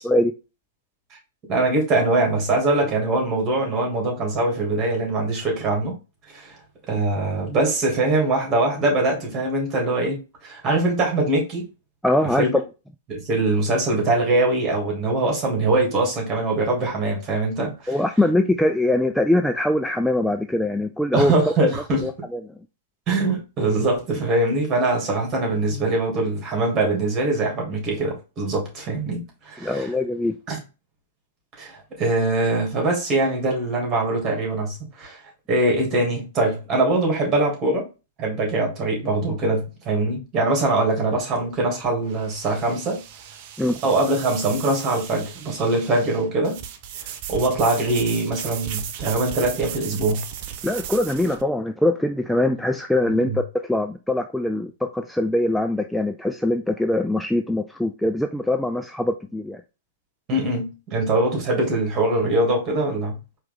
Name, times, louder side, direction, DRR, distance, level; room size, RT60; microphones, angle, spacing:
voice 1, 1.5-5.9 6.3-6.5 6.9-11.7 12.4-12.6 13.1-17.9 21.1-22.0 23.1-29.9 30.5-30.6 31.6-35.2 35.5-37.9 38.2-43.0 43.8-46.6 47.0-50.2 53.1-53.4 60.3-63.2, right 2 dB, 30° right, 2.5 m, -22 dB
voice 2, 12.0-12.6 17.9-21.5 22.0-22.5 29.6-30.3 43.6-43.8 50.6-59.6, left 1 dB, ahead, 0.3 m, -22 dB
sound 1, 41.1-51.4, right 9 dB, 50° right, 0.6 m, -36 dB
4.5 x 3.1 x 3.8 m
hypercardioid pair, 110°, 0 cm